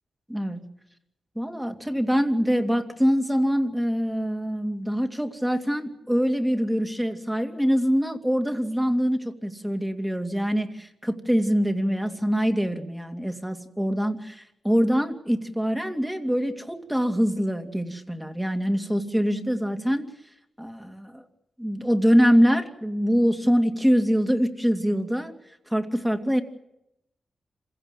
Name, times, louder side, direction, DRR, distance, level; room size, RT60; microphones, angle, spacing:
voice 1, 0.3-0.6 1.4-20.1 20.6-21.2 21.6-25.3 25.7-26.4, equal, 5° right, 6 dB, 2.5 m, -24 dB
27.0 x 16.0 x 9.2 m, 0.84 s
cardioid pair, 70°, 0 cm